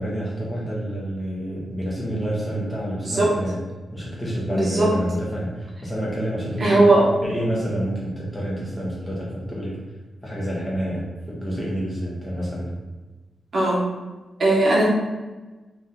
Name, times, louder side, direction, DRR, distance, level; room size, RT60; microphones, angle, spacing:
voice 1, 0.0-3.6 3.9-6.9 7.2-9.8 10.2-12.8, equal, 15° left, -5 dB, 1.1 m, -28 dB
voice 2, 4.5-4.9 6.6-7.1 13.5-13.8 14.4-14.8, right 2 dB, 45° right, -4 dB, 0.8 m, -18 dB
3.5 x 2.5 x 4.2 m, 1.2 s
wide cardioid pair, 155°, 0 cm